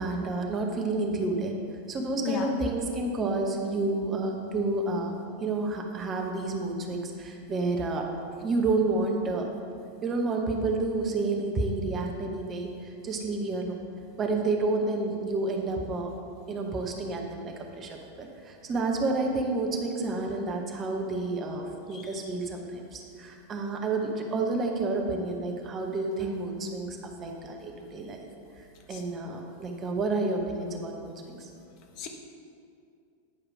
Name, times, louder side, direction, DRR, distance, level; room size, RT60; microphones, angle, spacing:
voice 1, 0.0-1.5 1.9-5.1 5.4-8.1 8.4-9.5 10.0-13.8 14.2-16.1 16.5-28.2 28.9-31.5, right 3 dB, 25° right, 2 dB, 0.9 m, -30 dB
voice 2, 2.2-2.5 21.9-22.0 28.9-29.0 32.0-32.1, left 6 dB, 40° left, 3 dB, 0.9 m, -32 dB
9.0 x 4.9 x 4.8 m, 2.4 s
figure-of-eight pair, 90°, 0 cm